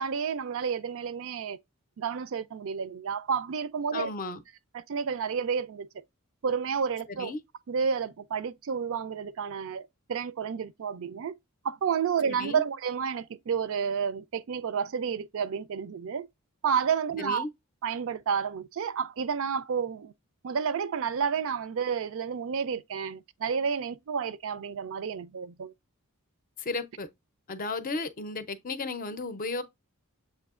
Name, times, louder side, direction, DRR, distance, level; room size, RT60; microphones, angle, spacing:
voice 1, 0.0-1.6 2.0-4.1 4.7-5.9 6.4-7.3 7.7-11.4 11.6-16.3 16.6-17.5 17.8-20.1 20.4-25.7, right 6 dB, 65° right, 0.4 m, -30 dB
voice 2, 3.9-4.4 7.1-7.4 12.3-12.6 17.2-17.5 26.6-27.1 27.5-29.6, left 3 dB, 40° left, 0.5 m, -34 dB
7.1 x 2.7 x 2.4 m
head